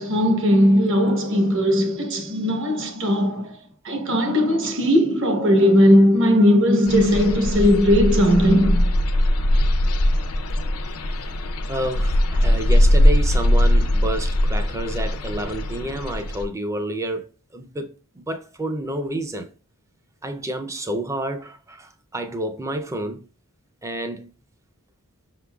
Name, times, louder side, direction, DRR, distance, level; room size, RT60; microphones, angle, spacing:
voice 1, 0.0-8.9, equal, 60° right, 1.0 m, -18 dB
sound 1, 6.8-16.4, left 1 dB, 80° left, 0.6 m, -20 dB
voice 2, 10.8-11.3 11.7-17.3 17.5-17.9 18.1-19.5 20.2-23.3 23.8-24.3, right 1 dB, 15° right, 0.4 m, -29 dB
5.4 x 3.8 x 2.3 m
head